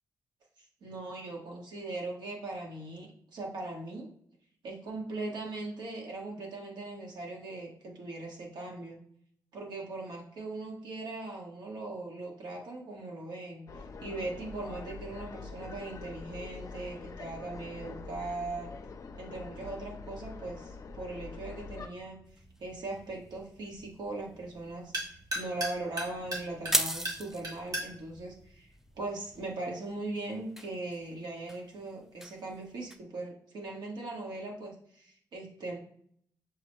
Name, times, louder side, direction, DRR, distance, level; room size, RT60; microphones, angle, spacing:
voice 1, 0.6-4.1 4.6-9.0 9.5-18.7 19.2-22.2 22.6-24.9 25.3-28.7 28.9-35.8, right 2 dB, 80° right, -1 dB, 1.3 m, -39 dB
sound 1, 13.7-21.9, left 4 dB, 50° left, 0.5 m, -44 dB
sound 2, 21.9-29.5, right 1 dB, 55° right, 1.6 m, -41 dB
sound 3, 22.3-33.0, equal, 5° right, 0.4 m, -40 dB
6.4 x 2.1 x 3.1 m, 0.64 s
cardioid pair, 80°, 7 cm